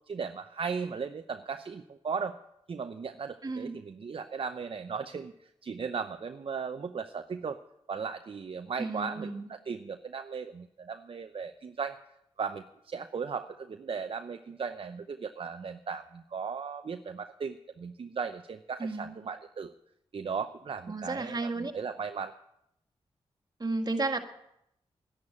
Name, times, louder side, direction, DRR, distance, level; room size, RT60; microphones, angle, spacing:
voice 1, 0.1-2.4 2.7-7.6 7.9-12.0 12.4-19.7 20.1-22.3, right 5 dB, 55° right, 8 dB, 0.7 m, -37 dB
voice 2, 3.4-3.8 8.8-9.5 18.8-19.2 20.9-21.7 23.6-24.2, right 3 dB, 40° right, 5 dB, 1.9 m, -33 dB
11.5 x 11.0 x 8.7 m, 0.80 s
cardioid pair, 55°, 11 cm